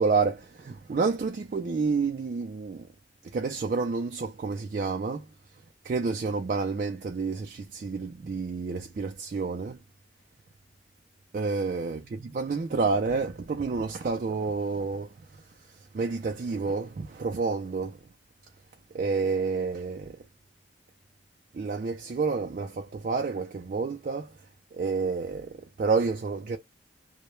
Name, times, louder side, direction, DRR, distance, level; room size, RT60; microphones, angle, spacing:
voice 1, 0.0-2.9 3.2-5.3 5.8-9.8 11.3-15.1 15.9-18.0 18.9-20.2 21.5-24.3 24.7-26.6, right 4 dB, 45° right, 0.3 m, -29 dB
2.1 x 2.1 x 3.0 m
head